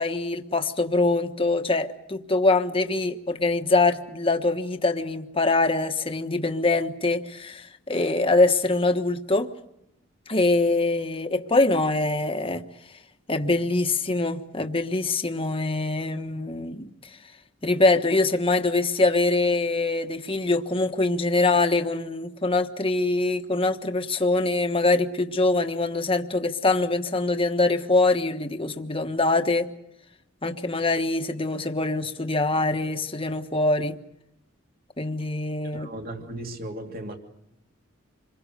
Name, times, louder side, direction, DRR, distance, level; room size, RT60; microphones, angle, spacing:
voice 1, 0.0-9.5 10.3-12.6 13.3-16.9 17.6-29.7 30.4-34.0 35.0-35.9, left 2 dB, 25° left, 7 dB, 1.3 m, -24 dB
voice 2, 35.7-37.2, right 1 dB, 45° right, 3 dB, 2.8 m, -36 dB
27.5 x 22.0 x 6.7 m, 0.81 s
head